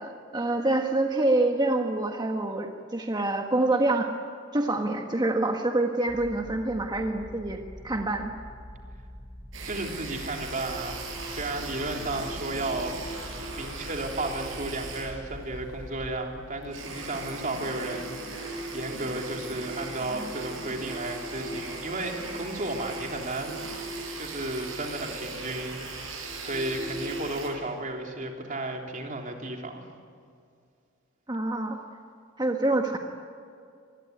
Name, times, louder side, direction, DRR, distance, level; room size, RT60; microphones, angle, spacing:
voice 1, 0.0-4.1 4.5-7.6 7.8-8.3 31.3-31.8 32.4-33.0, right 2 dB, 20° right, 3 dB, 1.4 m, -26 dB
sound 1, 6.1-16.2, equal, 10° left, 4.8 m, -44 dB
sound 2, 9.5-27.5, right 2 dB, 75° right, 7.4 m, -38 dB
voice 2, 9.6-13.3 13.6-23.6 24.2-29.8, right 2 dB, 40° right, 2 dB, 3.6 m, -34 dB
26.0 x 21.0 x 9.5 m, 2.3 s
head